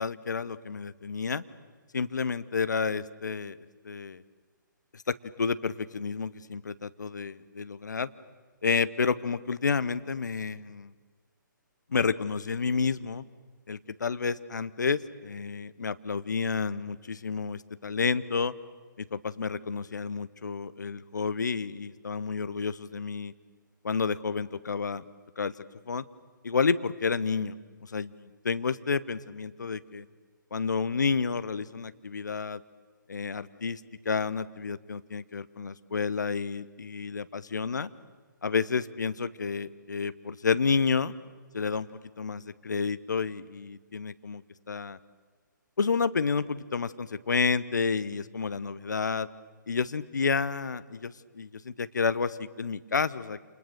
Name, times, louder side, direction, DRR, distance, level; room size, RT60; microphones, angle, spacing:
voice 1, 0.0-1.4 1.9-3.6 3.8-4.2 4.9-8.1 8.6-10.9 11.9-13.2 13.7-18.5 19.0-23.3 23.8-25.0 25.4-26.0 26.4-30.1 30.5-32.6 33.1-37.9 38.4-41.1 41.5-45.0 45.8-49.3 49.7-53.5, left 5 dB, 60° left, 14 dB, 1.0 m, -30 dB
29.0 x 28.0 x 6.8 m, 1.4 s
figure-of-eight pair, 135°, 11 cm